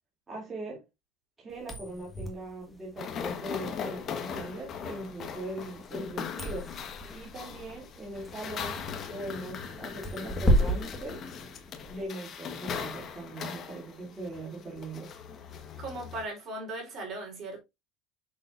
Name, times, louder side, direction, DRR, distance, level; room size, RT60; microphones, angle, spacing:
voice 1, 0.3-0.8 1.4-6.7 7.1-8.8 9.1-11.2 11.9-15.1, right 2 dB, 20° right, 2.8 m, -40 dB
sound 1, 1.5-12.0, equal, 15° left, 1.6 m, -34 dB
sound 2, 3.0-16.2, left 7 dB, 40° left, 1.2 m, -39 dB
voice 2, 15.8-17.6, right 2 dB, 40° right, 3.7 m, -38 dB
6.5 x 6.3 x 2.6 m
supercardioid pair, 125°, 0 cm